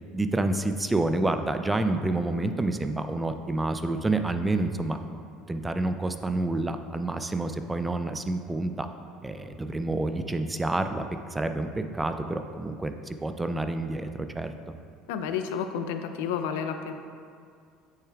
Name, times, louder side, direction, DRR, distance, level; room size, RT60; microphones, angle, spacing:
voice 1, 0.1-5.2 5.5-8.9 9.2-11.0 11.3-14.1 14.4-14.5, right 2 dB, 10° right, 8 dB, 0.4 m, -28 dB
voice 2, 15.1-16.9, left 7 dB, 85° left, 7 dB, 0.5 m, -31 dB
8.8 x 6.7 x 2.4 m, 2.2 s
supercardioid pair, 110°, 0 cm